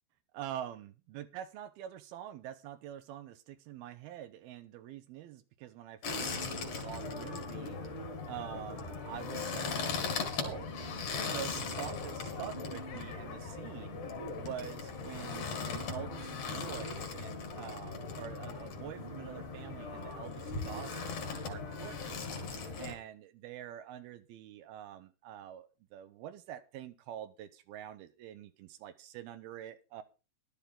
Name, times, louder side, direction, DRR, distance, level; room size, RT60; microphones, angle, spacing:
voice 1, 0.3-10.7 11.2-14.0 14.3-21.2 21.5-22.4 22.8-30.0, right 11 dB, 80° right, 2.7 m, -46 dB
sound 1, 6.0-22.9, left 4 dB, 55° left, 3.6 m, -39 dB
13.0 x 12.0 x 3.7 m
omnidirectional pair, 4.5 m